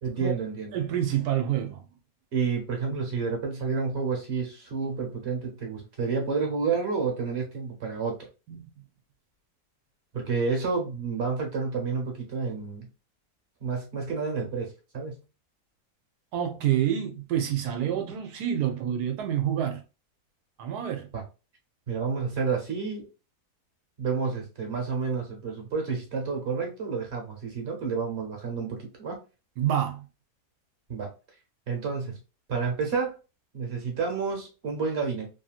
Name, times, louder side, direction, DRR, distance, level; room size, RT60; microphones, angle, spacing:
voice 1, 0.0-0.8 2.3-8.3 10.1-12.9 13.6-15.2 21.1-21.2 21.9-23.1 24.0-29.2 30.9-31.1 31.7-32.2 32.5-33.2 33.5-35.3, right 5 dB, 45° right, 1.3 m, -30 dB
voice 2, 0.7-1.8 8.5-8.6 16.3-19.8 20.6-21.1 29.6-30.1, right 10 dB, 85° right, 1.3 m, -27 dB
3.1 x 2.7 x 2.4 m
omnidirectional pair, 1.6 m